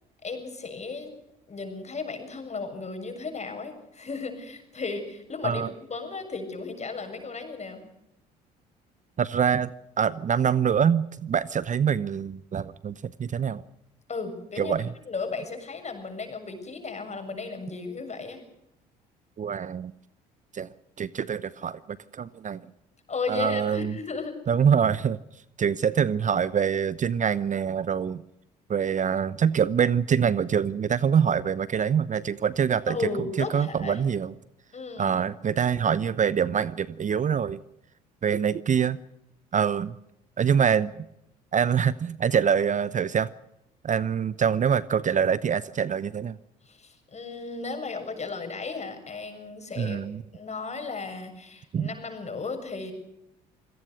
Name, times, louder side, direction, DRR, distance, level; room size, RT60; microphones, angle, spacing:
voice 1, 0.2-1.1 1.5-7.8 14.1-14.8 15.1-18.4 23.1-24.4 32.9-34.0 34.7-35.2 46.6-50.0 50.3-52.9, left 4 dB, 35° left, 6 dB, 7.1 m, -35 dB
voice 2, 9.2-13.6 14.6-14.9 19.4-19.9 20.5-20.7 21.0-21.8 22.1-22.6 23.3-24.0 24.5-25.2 25.6-28.2 28.7-33.0 33.4-34.3 35.0-37.6 38.2-39.0 39.5-40.0 40.4-41.0 41.5-43.3 43.8-46.4 49.8-50.2 51.7-51.9, right 7 dB, 35° right, 18 dB, 0.8 m, -25 dB
26.5 x 17.5 x 6.4 m, 0.84 s
hypercardioid pair, 60°, 21 cm